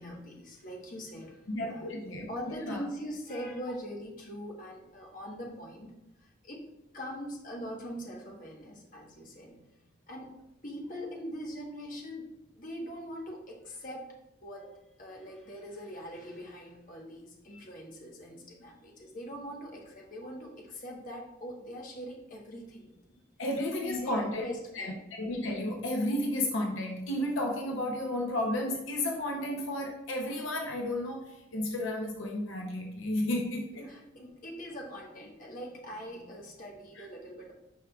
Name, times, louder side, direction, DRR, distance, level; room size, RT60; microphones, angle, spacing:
voice 1, 0.0-5.9 6.2-9.7 10.1-14.1 14.4-23.2 23.8-25.0 33.8-37.5, equal, 40° left, -1 dB, 1.2 m, -42 dB
voice 2, 1.5-2.8 23.4-24.4 24.7-33.9 37.0-37.1, left 1 dB, 75° left, 1 dB, 0.8 m, -32 dB
9.2 x 4.7 x 2.3 m, 0.89 s
head